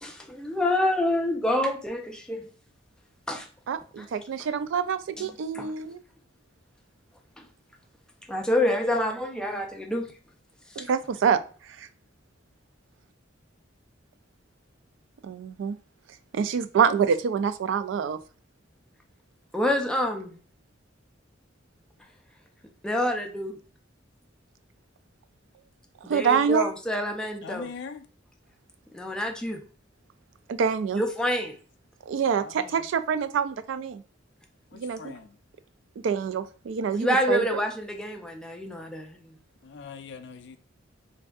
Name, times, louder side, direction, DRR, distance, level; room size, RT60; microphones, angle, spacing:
voice 1, 0.0-2.5 3.3-3.5 4.0-4.1 5.2-5.3 5.5-5.7 8.3-10.1 10.8-10.9 19.5-20.4 22.8-23.6 26.0-27.7 28.9-29.6 30.9-31.6 36.9-39.2, left 1 dB, 5° left, 0.4 m, -27 dB
voice 2, 3.7-6.0 10.8-11.4 11.7-11.9 15.2-15.8 16.3-18.2 26.1-26.7 30.5-31.0 32.1-34.0 34.7-35.1 36.0-37.4, right 6 dB, 70° right, 0.3 m, -26 dB
voice 3, 27.4-28.1 32.4-32.9 34.7-35.4 39.6-40.6, left 5 dB, 65° left, 0.4 m, -42 dB
3.4 x 2.6 x 2.3 m
head